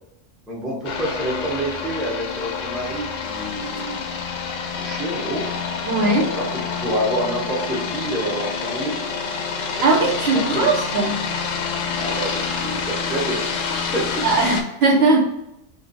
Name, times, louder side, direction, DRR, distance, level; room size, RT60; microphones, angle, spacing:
voice 1, 0.5-4.0 4.8-5.5 6.1-9.0 9.6-9.9 10.3-10.7 12.0-14.2, right 1 dB, ahead, -4 dB, 0.6 m, -28 dB
sound 1, 0.8-14.6, left 5 dB, 80° left, 0.9 m, -27 dB
voice 2, 5.9-6.3 9.8-11.2 14.2-15.2, right 3 dB, 65° right, 0 dB, 0.8 m, -19 dB
2.6 x 2.2 x 3.9 m, 0.85 s
omnidirectional pair, 1.3 m